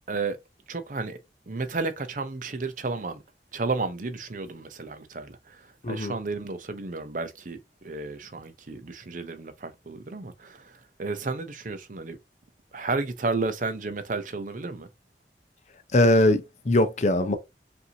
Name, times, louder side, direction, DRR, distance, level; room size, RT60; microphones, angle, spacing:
voice 1, 0.1-0.4 0.7-1.2 1.5-3.2 3.5-12.2 12.7-14.9, right 3 dB, 45° right, 0.6 m, -32 dB
voice 2, 15.9-17.4, left 1 dB, 40° left, 0.6 m, -21 dB
5.4 x 2.6 x 2.8 m
head